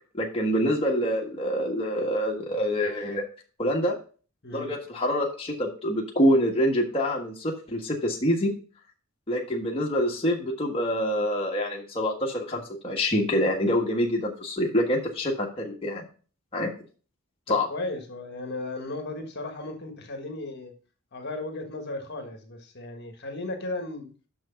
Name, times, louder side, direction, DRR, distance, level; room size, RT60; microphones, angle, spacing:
voice 1, 0.1-3.2 3.6-4.0 4.5-8.5 9.3-16.0 16.5-16.7 17.5-17.7, equal, 25° left, -2 dB, 1.4 m, -26 dB
voice 2, 17.5-20.7 21.1-24.1, left 2 dB, 50° left, 4 dB, 1.4 m, -35 dB
6.2 x 6.2 x 5.7 m, 0.38 s
head